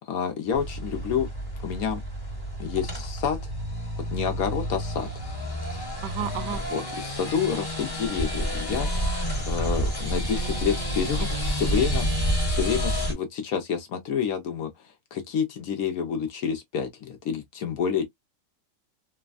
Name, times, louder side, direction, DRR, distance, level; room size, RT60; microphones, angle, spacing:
voice 1, 0.1-1.3 1.6-2.0 2.6-3.4 4.1-5.1 5.7-5.9 6.7-12.1 12.5-18.1, left 7 dB, 65° left, 1.0 m, -29 dB
sound 1, 0.5-13.1, equal, 15° left, 1.0 m, -29 dB
voice 2, 6.0-6.6 10.3-11.0 11.3-11.8, right 9 dB, 75° right, 1.2 m, -35 dB
3.3 x 2.1 x 2.3 m
omnidirectional pair, 1.9 m